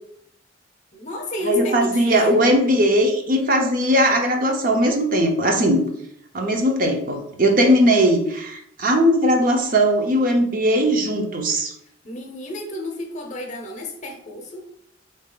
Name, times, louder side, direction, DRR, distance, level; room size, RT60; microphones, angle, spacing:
voice 1, 0.9-2.6 12.0-14.7, left 1 dB, 40° left, 3 dB, 0.7 m, -32 dB
voice 2, 1.4-5.8 6.3-11.7, equal, 50° right, 3 dB, 0.7 m, -19 dB
4.2 x 2.8 x 3.7 m, 0.70 s
head